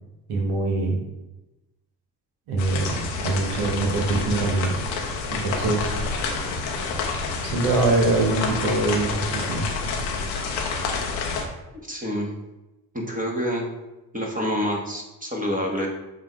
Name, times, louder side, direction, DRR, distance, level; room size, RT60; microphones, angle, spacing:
voice 1, 0.3-1.0 2.5-4.7 5.3-5.9 7.4-9.6, right 2 dB, 70° right, 0 dB, 1.4 m, -23 dB
sound 1, 2.6-11.4, left 4 dB, 85° left, 0.8 m, -28 dB
voice 2, 11.7-12.3 12.9-13.7 14.1-15.9, equal, 15° right, -1 dB, 1.6 m, -27 dB
7.5 x 2.8 x 4.7 m, 1.0 s
figure-of-eight pair, 40°, 50 cm